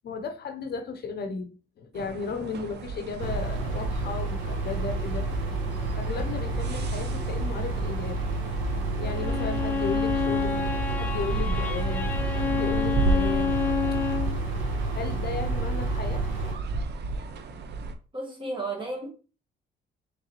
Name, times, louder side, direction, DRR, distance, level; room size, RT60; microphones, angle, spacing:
voice 1, 0.0-5.3 5.9-8.3 9.0-12.1 12.4-13.5 13.9-14.0 14.9-16.2, left 5 dB, 55° left, 0.7 m, -35 dB
sound 1, 1.9-17.9, right 3 dB, 60° right, 0.6 m, -35 dB
sound 2, 3.2-16.6, right 2 dB, 85° right, 0.9 m, -29 dB
Bowed string instrument, 9.0-14.4, left 6 dB, 5° left, 0.7 m, -29 dB
voice 2, 18.1-19.1, right 2 dB, 25° right, 1.6 m, -33 dB
3.8 x 3.3 x 3.0 m
cardioid pair, 90°, 20 cm